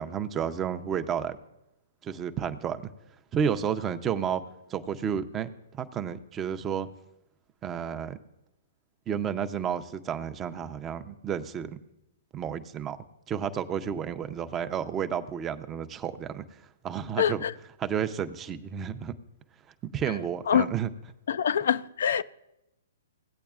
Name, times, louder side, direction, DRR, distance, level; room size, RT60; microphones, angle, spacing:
voice 1, 0.0-1.4 2.0-2.9 3.3-4.4 4.7-5.5 5.8-6.9 7.6-8.2 9.1-11.8 12.3-13.0 13.3-17.5 17.8-19.1 19.9-20.9, right 8 dB, 20° right, 0.6 m, -31 dB
voice 2, 17.2-17.5 20.5-20.7 21.3-22.2, left 8 dB, 65° left, 0.3 m, -24 dB
17.0 x 8.4 x 2.4 m
hypercardioid pair, 125°, 0 cm